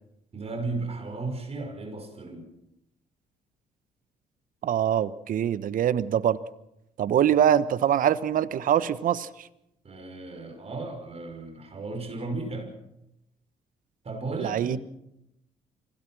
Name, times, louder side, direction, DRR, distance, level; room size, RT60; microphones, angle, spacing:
voice 1, 0.3-2.5 9.8-12.7 14.0-14.8, right 3 dB, 40° right, 5.7 m, -35 dB
voice 2, 4.6-6.4 7.0-9.5 14.4-14.8, right 10 dB, 60° right, 1.1 m, -24 dB
25.0 x 17.5 x 6.2 m
hypercardioid pair, 55°, 16 cm